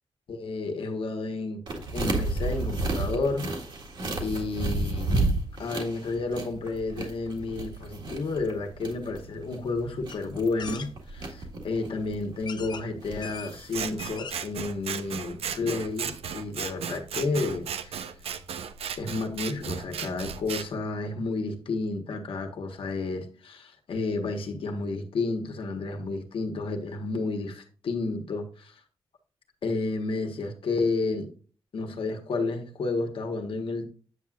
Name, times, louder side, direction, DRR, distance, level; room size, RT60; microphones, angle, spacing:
voice 1, 0.3-3.5 4.2-5.1 5.6-18.1 19.0-28.7 29.6-31.3 31.7-33.9, left 3 dB, 65° left, 1.5 m, -31 dB
sound 1, 1.7-13.8, right 2 dB, 55° right, 1.8 m, -32 dB
sound 2, 10.1-10.2 10.6-10.9 11.8-11.9 12.4-12.9 13.2-13.5 13.9-14.5 14.9-15.0 15.2-15.3, left 6 dB, 50° left, 0.6 m, -41 dB
Scissors, 13.7-20.7, right 7 dB, 90° right, 0.7 m, -35 dB
8.8 x 7.5 x 2.5 m
wide cardioid pair, 145°, 10 cm